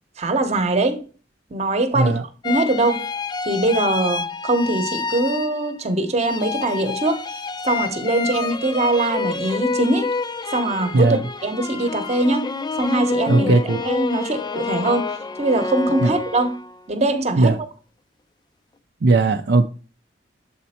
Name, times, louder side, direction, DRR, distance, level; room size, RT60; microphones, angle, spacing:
voice 1, 0.2-1.0 1.5-2.2 2.4-3.0 3.4-7.2 7.6-10.1 10.5-13.5 13.8-15.1 15.4-16.6 16.9-17.7, right 2 dB, 35° right, 0.9 m, -22 dB
sound 1, 2.4-5.9 6.2-16.8, left 4 dB, 25° left, 0.4 m, -28 dB
voice 2, 13.3-13.8 16.0-16.1 17.4-17.5 19.0-19.7, right 3 dB, 65° right, 0.5 m, -17 dB
7.4 x 4.2 x 4.3 m
head